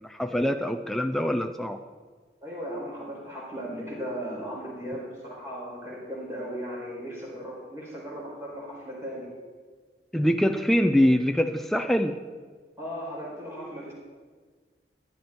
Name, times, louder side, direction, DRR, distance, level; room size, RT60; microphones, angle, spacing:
voice 1, 0.0-1.8 10.1-12.2, equal, ahead, 6 dB, 0.4 m, -24 dB
voice 2, 2.4-9.3 12.8-13.9, equal, 15° right, -5 dB, 4.6 m, -37 dB
14.5 x 10.5 x 4.4 m, 1.5 s
head